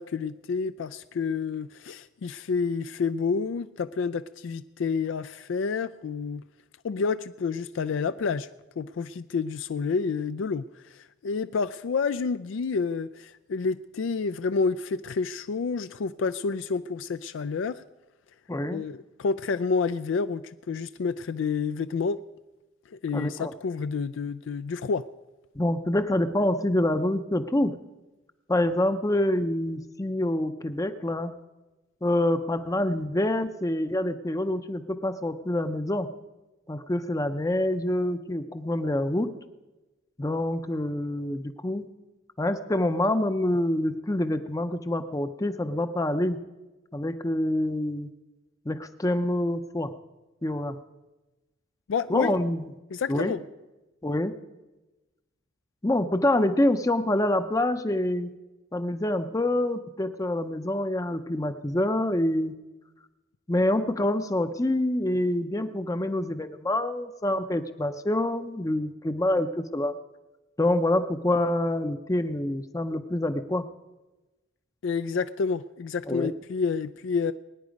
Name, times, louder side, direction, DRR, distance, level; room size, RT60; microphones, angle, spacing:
voice 1, 0.0-6.4 6.8-8.5 8.8-10.6 10.9-17.8 18.7-22.2 23.0-25.0 51.9-52.3 52.9-53.4 74.8-77.3, left 5 dB, 65° left, 12 dB, 0.4 m, -29 dB
voice 2, 18.5-18.8 23.1-23.5 25.6-27.7 28.5-31.3 32.0-36.1 36.7-39.3 40.2-41.9 42.4-46.4 46.9-48.1 48.7-49.9 50.4-50.8 52.1-52.7 53.1-53.3 54.0-54.3 55.8-58.3 58.7-62.5 63.5-69.9 70.6-73.6 76.0-76.3, left 1 dB, 15° left, 9 dB, 0.6 m, -26 dB
21.5 x 9.7 x 5.2 m, 1.1 s
head